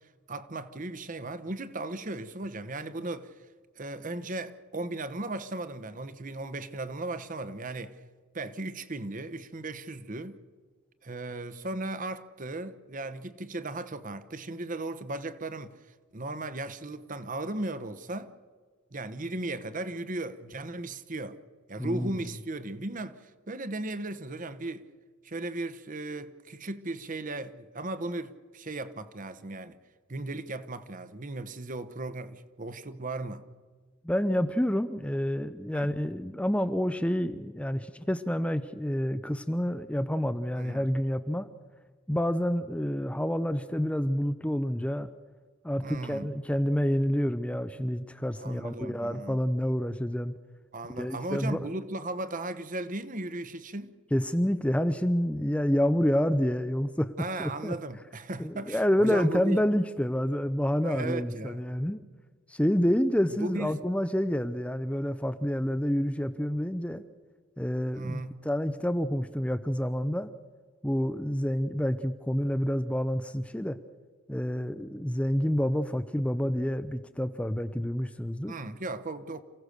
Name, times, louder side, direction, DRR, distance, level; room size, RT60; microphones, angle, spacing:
voice 1, 0.3-3.3 3.8-8.0 8.3-10.4 11.0-15.7 16.1-18.3 18.9-21.4 21.7-24.8 25.2-29.8 30.1-33.4 35.7-35.9 40.5-40.9 45.8-46.3 48.4-49.4 50.7-54.0 57.2-59.6 60.8-61.7 63.3-63.8 67.9-68.3 78.5-79.4, right 2 dB, 40° right, 1.0 m, -36 dB
voice 2, 21.8-22.1 34.0-41.5 42.1-45.1 45.6-50.3 50.9-51.7 54.1-57.1 57.4-57.7 58.4-62.0 62.5-67.0 67.6-70.3 70.8-73.8 74.3-78.6, equal, 5° left, 0.5 m, -28 dB
28.0 x 16.5 x 6.6 m
head